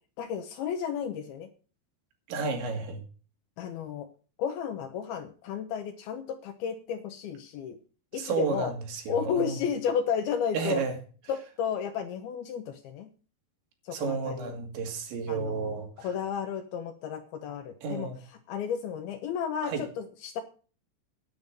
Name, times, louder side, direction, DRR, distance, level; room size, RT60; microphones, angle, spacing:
voice 1, 0.2-1.5 3.6-4.1 4.4-7.8 8.1-8.7 9.1-10.8 11.3-13.1 13.9-14.5 15.3-18.1 18.5-20.4, left 7 dB, 75° left, 2.4 m, -33 dB
voice 2, 2.3-3.0 8.1-9.6 10.5-11.0 13.9-15.9 17.8-18.2 19.6-19.8, right 5 dB, 80° right, 4.3 m, -31 dB
9.6 x 8.8 x 6.5 m
omnidirectional pair, 5.2 m